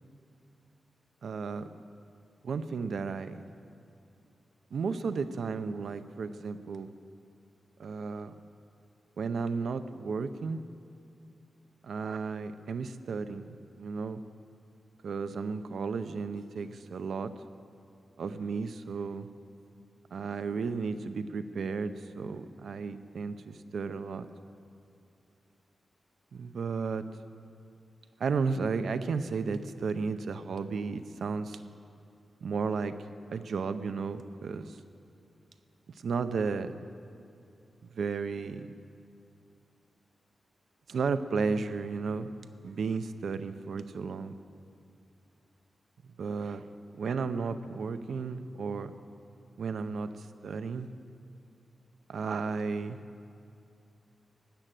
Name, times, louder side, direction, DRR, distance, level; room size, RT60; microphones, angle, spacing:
voice 1, 1.2-1.7 2.4-3.4 4.7-6.9 7.8-8.3 9.2-10.6 11.8-14.2 15.0-17.3 18.2-19.3 20.1-24.3 26.3-27.0 28.2-31.6 32.4-33.0 33.3-34.8 36.0-36.8 38.0-38.7 40.9-42.3 42.6-44.4 46.0-46.6 46.9-48.9 49.6-50.9 52.1-53.0, right 5 dB, 75° right, 11 dB, 0.6 m, -33 dB
16.0 x 9.9 x 7.6 m, 2.5 s
wide cardioid pair, 150°, 0 cm